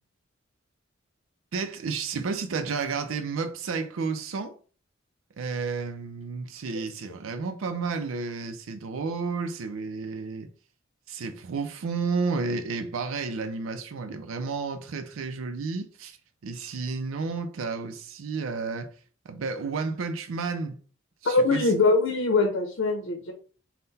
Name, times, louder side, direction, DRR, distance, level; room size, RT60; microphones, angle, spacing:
voice 1, 1.5-4.6 5.4-10.5 11.1-16.2 16.4-19.0 19.3-20.8 21.2-21.7, right 4 dB, 90° right, 0.4 m, -31 dB
voice 2, 21.2-23.3, left 3 dB, 75° left, 0.7 m, -22 dB
3.7 x 2.1 x 4.0 m
head